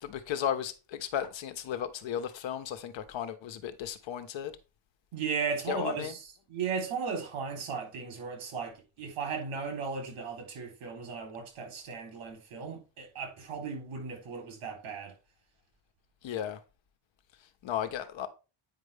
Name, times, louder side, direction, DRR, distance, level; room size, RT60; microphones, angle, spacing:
voice 1, 0.0-4.5 5.7-6.1 16.2-16.6 17.6-18.3, left 9 dB, 60° left, 1.3 m, -34 dB
voice 2, 5.1-15.1, right 5 dB, 75° right, 3.9 m, -36 dB
9.3 x 5.3 x 3.5 m
cardioid pair, 175°, 50 cm